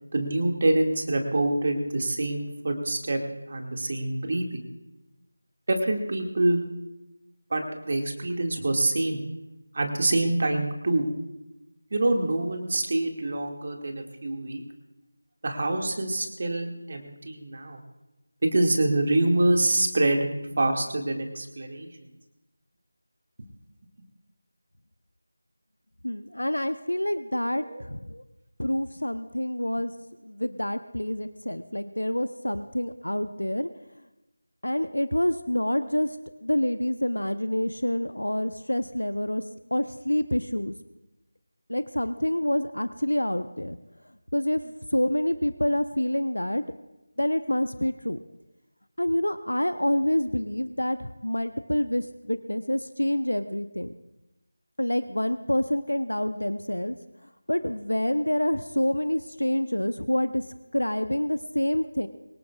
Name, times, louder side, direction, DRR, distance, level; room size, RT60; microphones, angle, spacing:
voice 1, 0.1-3.2 3.5-4.6 5.7-6.6 7.5-9.3 9.7-11.0 11.9-14.6 15.4-17.8 18.4-20.3 20.6-21.9 27.7-27.8, right 2 dB, 40° right, 3 dB, 2.1 m, -25 dB
voice 2, 26.0-28.2 28.6-29.9 30.2-33.7 34.6-36.2 36.4-39.4 39.7-40.8 41.7-43.8 44.3-46.6 47.2-48.2 49.0-53.9 54.8-57.0 57.5-60.4 60.7-62.1, left 1 dB, 75° left, 11 dB, 0.8 m, -27 dB
24.0 x 18.0 x 2.4 m, 0.98 s
figure-of-eight pair, 165°, 0 cm